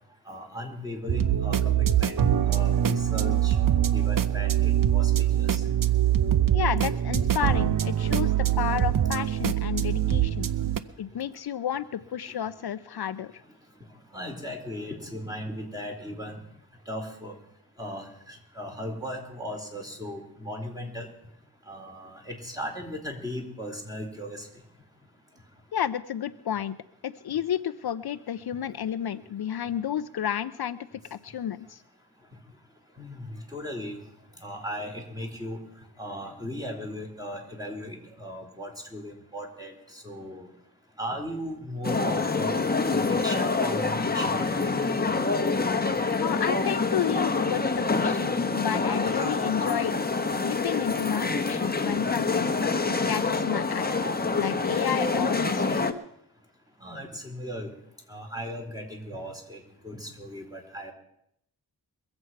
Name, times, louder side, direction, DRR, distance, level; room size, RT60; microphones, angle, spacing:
voice 1, 0.3-3.6 3.9-5.6 14.1-16.4 16.9-17.3 17.8-21.1 21.7-24.5 33.0-34.0 34.4-35.6 36.0-40.5 41.0-42.6 42.9-45.1 56.8-57.7 58.1-60.9, equal, 10° right, 1 dB, 4.2 m, -37 dB
sound 1, 1.1-10.8, right 11 dB, 55° right, 0.8 m, -23 dB
voice 2, 6.5-10.5 11.0-13.3 25.7-26.8 27.0-30.8 31.1-31.8 46.2-50.0 50.4-53.9 54.4-55.9, left 9 dB, 70° left, 13 dB, 0.6 m, -31 dB
sound 2, 41.8-55.9, left 4 dB, 25° left, 1.2 m, -26 dB
22.5 x 7.9 x 5.8 m, 0.74 s
cardioid pair, 55°, 40 cm